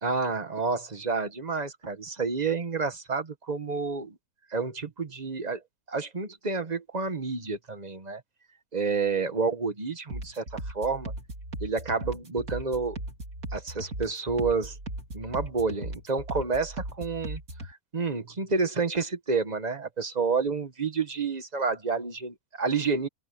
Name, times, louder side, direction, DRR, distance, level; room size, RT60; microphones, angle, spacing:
voice 1, 0.0-4.2 4.5-5.6 5.9-8.2 8.7-11.1 11.6-13.0 13.5-14.8 15.1-23.1, right 4 dB, 30° right, 1.4 m, -29 dB
sound 1, 10.1-17.7, right 1 dB, 70° right, 4.4 m, -38 dB
open air
omnidirectional pair, 1.6 m